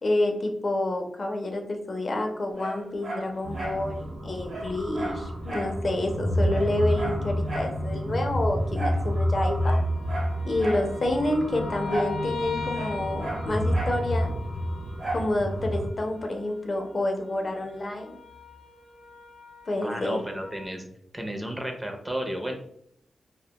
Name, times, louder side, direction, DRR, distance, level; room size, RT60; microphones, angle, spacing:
voice 1, 0.0-9.8 10.5-14.3 15.1-18.1 19.7-20.2, left 1 dB, 45° left, 3 dB, 0.4 m, -28 dB
sound 1, 2.5-5.3 5.7-20.7, left 4 dB, 75° left, 0.7 m, -44 dB
Dog, 2.5-3.8 4.1-4.2 4.5-5.8 6.1-6.2 6.5-7.8 8.7-9.1 9.5-10.9 11.9-12.2 12.5-14.0 15.0-15.3 15.8-15.9, right 2 dB, 60° right, 0.9 m, -35 dB
sound 2, 3.4-15.9, equal, 85° right, 0.6 m, -29 dB
voice 2, 19.8-20.9 21.1-22.5, equal, 20° right, 4 dB, 0.4 m, -32 dB
2.4 x 2.1 x 2.7 m, 0.71 s
cardioid pair, 85°, 0 cm